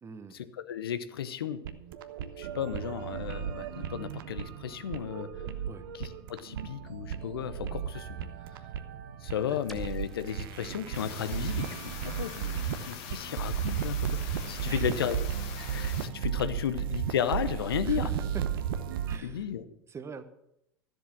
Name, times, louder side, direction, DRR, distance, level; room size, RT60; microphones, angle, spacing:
voice 1, 0.0-0.4 5.7-5.9 9.5-9.6 14.6-15.1 17.8-18.4 19.1-19.5 19.9-20.3, right 5 dB, 20° right, 11 dB, 1.0 m, -43 dB
voice 2, 0.7-1.6 2.4-5.3 5.9-8.1 9.2-15.3 15.7-18.1 19.2-19.6, left 9 dB, 75° left, 13 dB, 0.9 m, -34 dB
sound 1, 1.6-19.2, right 9 dB, 65° right, 0.9 m, -35 dB
sound 2, 9.7-13.5, left 1 dB, ahead, 2.5 m, -53 dB
sound 3, 10.9-16.1, left 10 dB, 50° left, 1.1 m, -43 dB
13.5 x 7.6 x 6.0 m, 0.79 s
figure-of-eight pair, 80°, 13 cm